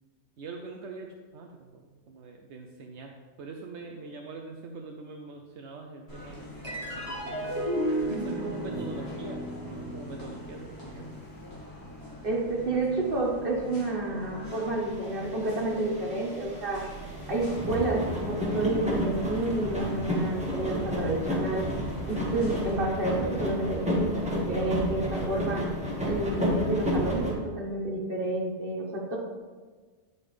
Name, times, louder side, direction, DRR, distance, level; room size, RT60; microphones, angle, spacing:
voice 1, 0.4-1.1 1.3-3.1 3.4-7.5 8.0-11.1, right 4 dB, 70° right, 1 dB, 0.9 m, -43 dB
sound 1, 6.1-22.7, left 2 dB, 60° left, 2.3 m, -45 dB
sound 2, 6.6-13.3, right 1 dB, 25° right, 1.4 m, -34 dB
voice 2, 12.2-16.8 17.3-21.7 22.1-25.6 26.0-29.2, right 2 dB, 50° right, -3 dB, 1.7 m, -29 dB
sound 3, 14.9-15.0 15.1-15.4 15.9-27.3, equal, 5° right, 1.5 m, -31 dB
10.0 x 5.4 x 3.3 m, 1.4 s
omnidirectional pair, 1.2 m